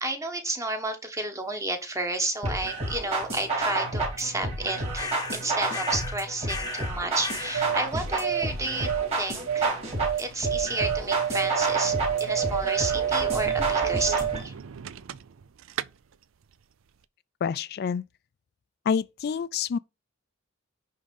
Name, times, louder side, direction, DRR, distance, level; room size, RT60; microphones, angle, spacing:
voice 1, 0.0-9.8 10.2-14.5, right 2 dB, 15° right, 1.3 m, -31 dB
sound 1, 2.4-14.4, right 2 dB, 30° right, 3.9 m, -30 dB
sound 2, 4.9-5.4 5.7-6.2 6.5-6.9 7.2-7.7, left 4 dB, 20° left, 0.9 m, -35 dB
sound 3, 7.2-15.4 15.7-15.8, right 9 dB, 70° right, 0.4 m, -29 dB
voice 2, 17.4-18.0 18.9-19.8, left 6 dB, 50° left, 0.3 m, -27 dB
10.5 x 3.7 x 5.3 m
head